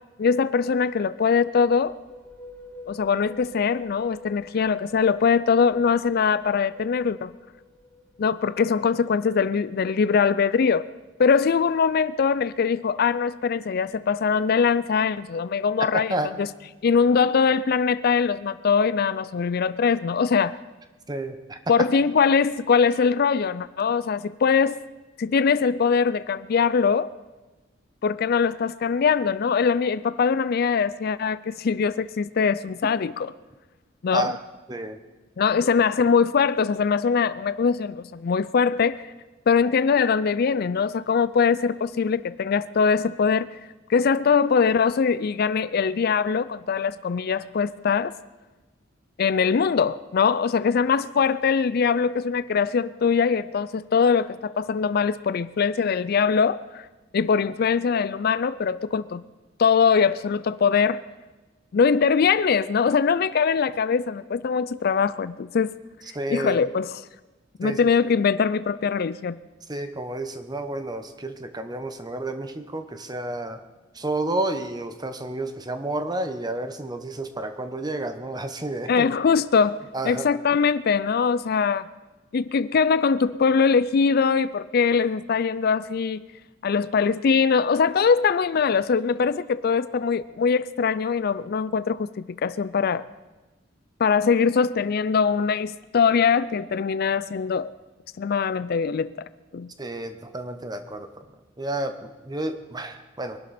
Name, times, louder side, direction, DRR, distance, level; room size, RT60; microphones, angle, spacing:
voice 1, 0.2-1.9 2.9-7.3 8.2-10.9 11.2-16.5 16.8-20.6 21.7-24.8 25.2-27.1 28.0-33.3 34.0-34.4 35.4-39.1 39.5-43.6 43.9-48.1 49.2-56.9 57.1-59.2 59.6-61.0 61.7-65.7 66.3-67.0 67.6-69.4 78.9-81.9 82.3-86.3 86.6-93.0 94.0-97.7 98.2-99.3 99.5-99.7, left 6 dB, 55° left, 0.4 m, -22 dB
sound 1, 1.6-9.1, left 3 dB, 10° left, 3.0 m, -47 dB
voice 2, 15.9-16.3 21.1-21.6 34.1-34.4 34.7-35.0 66.1-66.6 67.6-67.8 69.7-73.6 73.9-79.1 79.9-80.3 99.8-101.2 101.6-103.4, right 2 dB, 20° right, 1.1 m, -30 dB
23.5 x 12.0 x 4.3 m
head